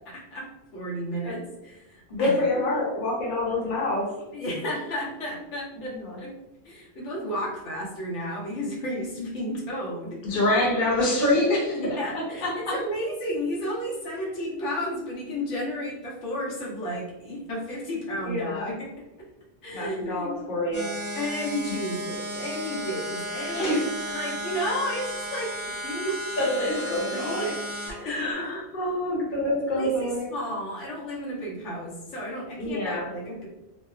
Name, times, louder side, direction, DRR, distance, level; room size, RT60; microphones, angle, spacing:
voice 1, 0.1-0.4 0.7-2.7 4.3-6.3 6.6-10.2 11.7-18.9 19.6-20.4 21.1-23.7 24.1-25.6 25.8-26.2 26.7-27.5 27.9-28.5 29.7-33.5, equal, 85° left, -4 dB, 1.1 m, -32 dB
voice 2, 2.1-4.2 5.8-6.2 10.2-12.8 18.2-18.7 19.7-20.9 23.5-23.8 26.4-27.6 28.0-30.3 32.6-33.1, left 1 dB, 50° left, -4 dB, 0.9 m, -26 dB
sound 1, 20.7-27.9, equal, 20° right, 0.5 m, -34 dB
2.8 x 2.0 x 2.3 m, 0.97 s
omnidirectional pair, 1.2 m